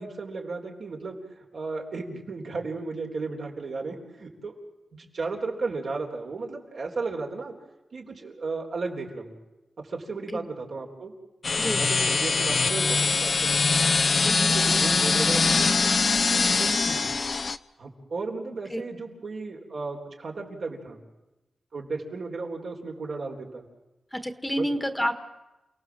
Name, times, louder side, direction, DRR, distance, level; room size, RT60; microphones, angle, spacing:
voice 1, 0.0-4.6 4.9-7.5 7.9-9.4 9.8-11.1 11.8-13.6 14.2-17.1 17.8-21.0 21.7-23.7 24.6-24.7, right 3 dB, 70° right, 0 dB, 4.1 m, -34 dB
sound 1, 11.4-17.6, left 4 dB, 55° left, 0.7 m, -23 dB
voice 2, 14.2-14.6 18.7-18.8 24.1-25.1, equal, 5° left, 9 dB, 1.5 m, -29 dB
29.0 x 18.0 x 7.6 m, 1.0 s
wide cardioid pair, 80°, 0 cm